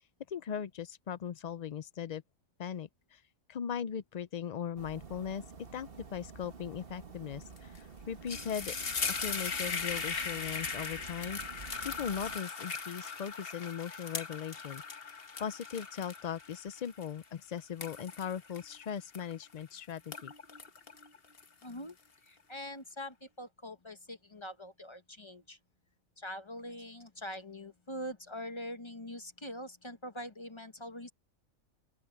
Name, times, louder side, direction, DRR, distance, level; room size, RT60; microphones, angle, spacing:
voice 1, 0.3-2.2 2.6-3.2 3.5-5.4 5.7-8.8 9.2-11.4 11.8-20.3, left 8 dB, 70° left, 0.4 m, -39 dB
sound 1, 4.8-12.4, right 4 dB, 45° right, 1.7 m, -50 dB
sound 2, 7.6-7.8 8.1-19.6 20.0-21.9, left 5 dB, 45° left, 1.5 m, -39 dB
voice 2, 21.6-22.0 22.2-25.6 26.2-31.1, equal, 25° left, 0.9 m, -43 dB
open air
omnidirectional pair, 1.4 m